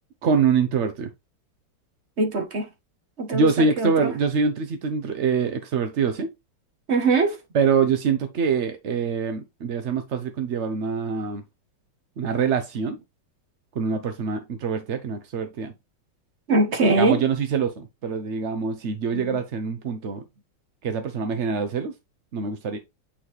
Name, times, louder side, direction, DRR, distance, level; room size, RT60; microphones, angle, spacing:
voice 1, 0.2-1.1 3.3-6.3 7.5-11.4 12.2-13.0 13.8-15.7 17.0-20.2 20.8-21.9 22.3-22.8, right 5 dB, 55° right, 0.8 m, -24 dB
voice 2, 2.2-2.6 3.2-3.5 3.8-4.1 6.9-7.3 16.5-17.2 19.1-19.4, right 3 dB, 40° right, 1.4 m, -21 dB
8.9 x 4.1 x 3.1 m
omnidirectional pair, 2.0 m